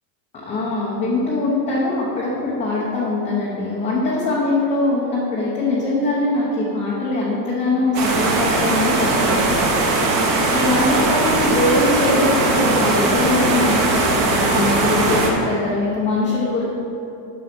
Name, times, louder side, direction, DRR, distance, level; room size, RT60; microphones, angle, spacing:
voice 1, 0.5-9.5 10.5-16.7, left 2 dB, 15° left, -6 dB, 0.7 m, -22 dB
sound 1, 7.9-15.3, right 2 dB, 40° right, 1.2 m, -19 dB
7.8 x 6.3 x 5.8 m, 2.8 s
cardioid pair, 180°, 49 cm